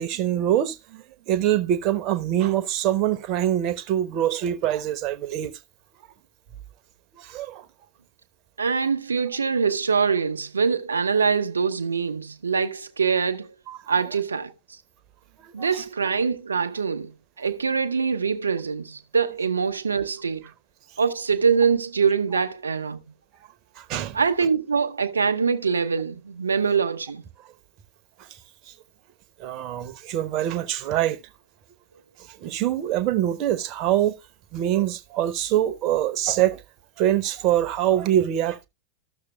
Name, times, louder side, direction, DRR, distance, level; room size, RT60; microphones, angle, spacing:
voice 1, 0.0-5.5 7.2-7.7 13.7-13.9 15.4-15.8 23.8-24.2 28.2-28.3 28.7-28.8 29.4-31.2 32.2-34.2 34.5-36.6 37.0-38.7, right 12 dB, 40° right, 0.9 m, -24 dB
voice 2, 8.6-13.5 13.9-14.5 15.5-20.5 21.0-23.0 24.1-27.2, right 5 dB, 75° right, 0.7 m, -24 dB
14.5 x 6.6 x 2.3 m
figure-of-eight pair, 90°, 0 cm